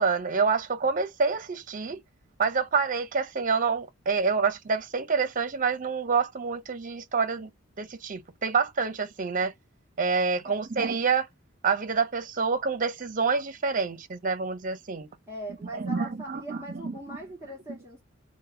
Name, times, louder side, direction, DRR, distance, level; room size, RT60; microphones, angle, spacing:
voice 1, 0.0-2.0 2.4-7.5 7.8-9.5 10.0-11.3 11.6-15.1 15.7-17.2 17.4-17.8, right 5 dB, 40° right, 0.6 m, -27 dB
voice 2, 15.3-18.0, equal, 15° right, 1.9 m, -40 dB
3.8 x 2.1 x 4.2 m
head